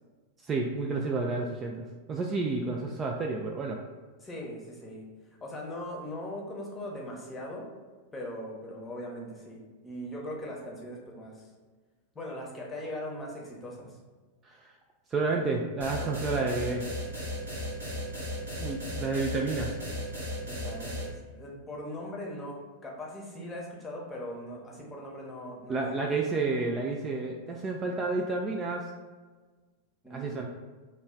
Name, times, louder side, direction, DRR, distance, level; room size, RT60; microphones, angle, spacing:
voice 1, 0.4-3.8 14.4-14.7 15.1-16.9 18.6-19.8 25.7-28.9 30.1-30.5, right 3 dB, 25° right, 1 dB, 0.3 m, -30 dB
voice 2, 4.2-5.1 5.4-7.7 8.1-11.5 12.1-14.0 20.4-26.0 30.0-30.5, left 1 dB, 15° left, -2 dB, 0.8 m, -40 dB
sound 1, 15.8-21.1, left 1 dB, 75° right, 1.2 m, -35 dB
3.0 x 2.3 x 3.7 m, 1.3 s
figure-of-eight pair, 90°, 0 cm